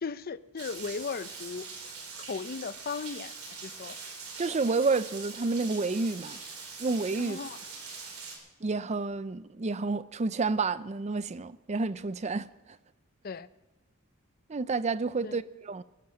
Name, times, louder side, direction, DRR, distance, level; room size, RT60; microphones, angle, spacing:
voice 1, 0.0-1.7 2.3-3.3 3.6-4.0 7.2-7.6 13.2-13.5 15.2-15.4, left 5 dB, 45° left, 0.5 m, -36 dB
Rain, 0.6-8.4, right 4 dB, 80° right, 4.2 m, -43 dB
voice 2, 4.4-6.4 6.8-7.4 8.6-12.8 14.5-15.8, right 3 dB, 30° right, 0.5 m, -30 dB
21.5 x 9.3 x 6.4 m
head